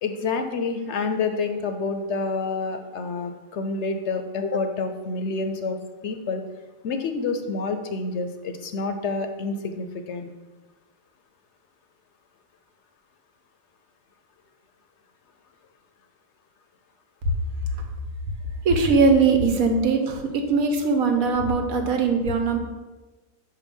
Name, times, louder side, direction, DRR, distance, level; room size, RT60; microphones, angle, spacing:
voice 1, 0.0-5.8 6.0-6.4 6.8-10.3, left 4 dB, 65° left, 7 dB, 0.8 m, -28 dB
voice 2, 18.6-22.6, right 4 dB, 90° right, 4 dB, 1.3 m, -20 dB
5.7 x 4.7 x 5.2 m, 1.2 s
omnidirectional pair, 1.4 m